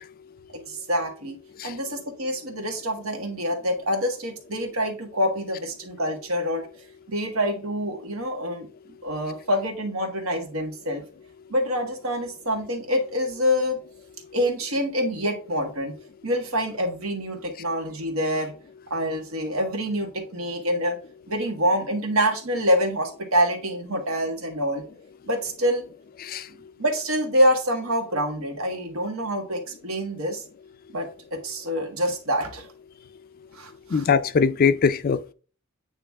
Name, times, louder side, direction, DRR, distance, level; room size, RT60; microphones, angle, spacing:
voice 1, 0.5-1.4 1.6-6.7 7.1-11.0 11.5-13.8 14.3-15.9 16.2-18.5 18.9-21.0 21.3-24.8 25.2-25.8 26.5-30.4 30.9-32.7 33.5-34.1, equal, 80° right, 1.6 m, -26 dB
voice 2, 33.9-35.3, left 5 dB, 45° left, 0.4 m, -21 dB
8.9 x 3.0 x 3.5 m
head